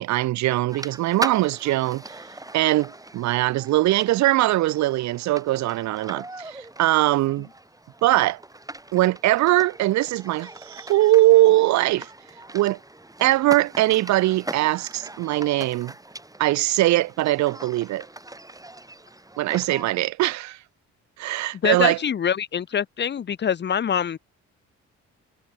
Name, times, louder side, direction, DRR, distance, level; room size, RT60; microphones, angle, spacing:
voice 1, 0.0-2.0 2.5-7.5 8.0-8.4 8.9-12.1 12.5-12.8 13.2-15.9 16.4-18.1 19.4-20.6 21.2-22.0, right 16 dB, 65° right, 0.5 m, -21 dB
sound 1, 0.7-19.8, right 2 dB, 10° right, 6.7 m, -40 dB
voice 2, 21.6-24.2, left 8 dB, 35° left, 0.7 m, -24 dB
cardioid pair, 90°, 30 cm